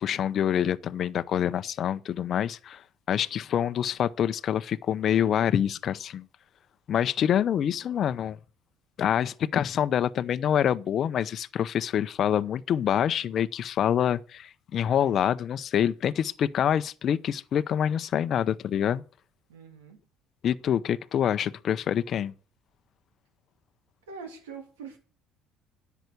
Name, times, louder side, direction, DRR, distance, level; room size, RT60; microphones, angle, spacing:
voice 1, 0.0-2.8 3.1-6.2 6.9-8.4 9.0-19.0 20.4-22.3, left 9 dB, 50° left, 0.6 m, -26 dB
voice 2, 19.5-20.0 24.1-25.0, right 5 dB, 90° right, 2.8 m, -43 dB
10.5 x 8.1 x 8.1 m
hypercardioid pair, 70°, 0 cm